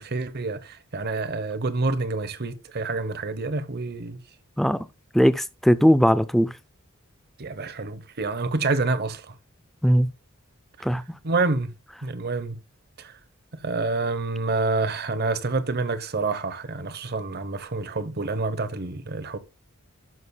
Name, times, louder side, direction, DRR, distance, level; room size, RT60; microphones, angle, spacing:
voice 1, 0.0-4.2 7.4-9.3 11.2-11.7 12.0-12.6 13.0-13.2 13.6-19.4, right 3 dB, 50° right, 0.9 m, -27 dB
voice 2, 5.1-6.5 9.8-10.1 10.8-11.0, equal, ahead, 0.4 m, -19 dB
12.0 x 6.3 x 2.3 m
head